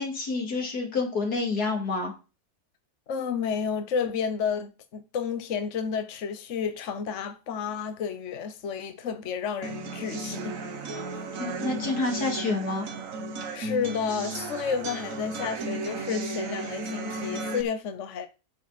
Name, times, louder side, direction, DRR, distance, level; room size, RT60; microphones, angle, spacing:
voice 1, 0.0-2.1 10.9-11.1 11.4-12.9, left 3 dB, 85° left, 3.3 m, -28 dB
voice 2, 3.1-10.9 13.5-18.3, left 6 dB, 55° left, 1.2 m, -31 dB
sound 1, 9.6-17.6, right 2 dB, 60° right, 1.5 m, -34 dB
12.0 x 7.1 x 4.2 m
omnidirectional pair, 1.6 m